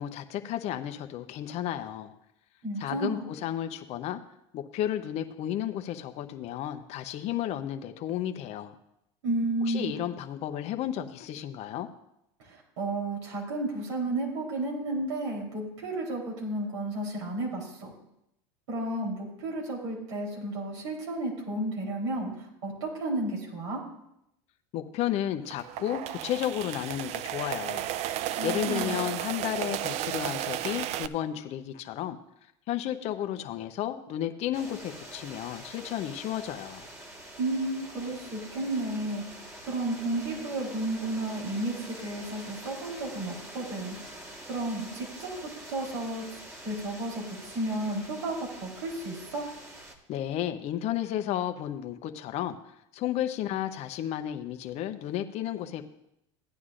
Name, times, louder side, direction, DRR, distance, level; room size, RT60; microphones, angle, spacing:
voice 1, 0.0-2.1 2.8-4.2 4.5-8.8 9.6-11.9 24.7-27.9 28.4-32.2 32.7-36.9 50.1-52.6 52.9-55.9, left 11 dB, 45° left, 7 dB, 0.8 m, -32 dB
voice 2, 2.6-3.2 9.2-9.9 12.4-17.9 18.7-23.8 28.4-29.0 37.4-39.4 39.7-44.0 44.5-46.2 46.6-49.4, right 2 dB, 85° right, -2 dB, 3.7 m, -32 dB
sound 1, 25.5-31.1, right 12 dB, 45° right, 0.5 m, -33 dB
sound 2, 34.5-50.0, right 1 dB, 20° right, 1.6 m, -45 dB
15.5 x 9.4 x 2.5 m, 0.81 s
supercardioid pair, 110°, 15 cm